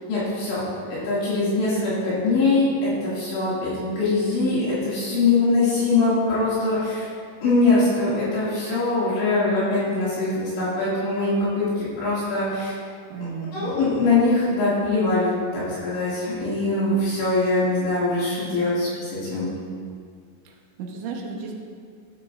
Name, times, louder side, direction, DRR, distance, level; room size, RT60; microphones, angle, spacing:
voice 1, 0.1-0.6 0.9-7.1 7.4-12.8 13.5-19.5, left 3 dB, 65° left, -10 dB, 4.4 m, -22 dB
voice 2, 13.1-13.7 20.5-21.5, right 5 dB, 75° right, -1 dB, 3.1 m, -34 dB
15.0 x 9.4 x 2.6 m, 2.2 s
omnidirectional pair, 5.9 m